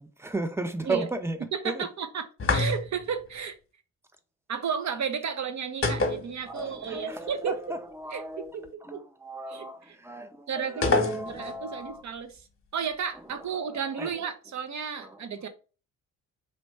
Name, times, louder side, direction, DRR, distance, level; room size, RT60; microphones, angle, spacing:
voice 1, 0.0-1.8 6.5-12.0 13.1-14.3 15.0-15.3, right 2 dB, 5° right, 0.7 m, -36 dB
voice 2, 1.5-2.2 2.5-3.5 4.5-7.5 8.1-8.6 8.9-9.0 9.5-9.6 10.5-10.9 11.3-12.4 12.7-15.5, right 7 dB, 40° right, 1.0 m, -33 dB
sound 1, 2.4-3.1 5.8-6.9 7.1-7.2 10.8-11.6, left 3 dB, 30° left, 1.3 m, -26 dB
4.3 x 3.0 x 3.3 m
hypercardioid pair, 55°, 43 cm